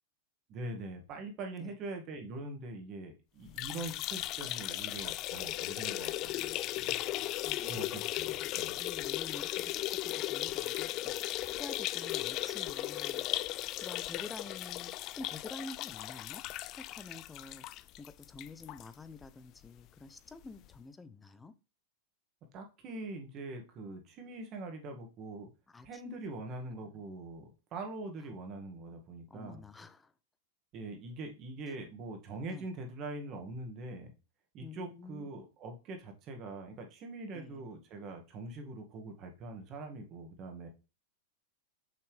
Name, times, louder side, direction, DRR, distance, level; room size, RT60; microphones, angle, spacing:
voice 1, 0.5-7.0 7.6-8.8 22.5-25.5 25.8-29.6 30.7-34.1 34.5-40.7, right 2 dB, 40° right, 2.0 m, -43 dB
sound 1, 3.5-18.9 19.2-19.3 19.6-19.7 20.7-20.8, left 16 dB, 45° left, 0.3 m, -36 dB
voice 2, 6.9-21.5 25.7-26.2 26.5-27.0 29.3-30.1 32.5-32.7 34.6-35.3 37.3-37.6, left 3 dB, 15° left, 0.7 m, -49 dB
6.3 x 5.8 x 3.3 m
hypercardioid pair, 100°, 0 cm